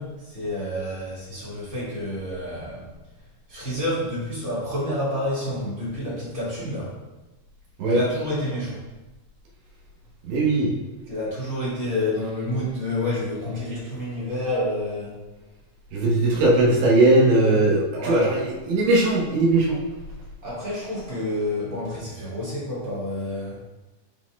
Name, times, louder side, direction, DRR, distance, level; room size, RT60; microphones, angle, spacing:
voice 1, 0.0-2.9 3.5-6.9 7.9-8.8 11.1-15.1 17.9-18.3 20.4-23.6, left 1 dB, 35° right, -8 dB, 1.4 m, -29 dB
voice 2, 10.3-10.7 15.9-19.8, right 2 dB, 75° right, -3 dB, 3.2 m, -19 dB
12.0 x 4.3 x 2.3 m, 1.1 s
omnidirectional pair, 5.2 m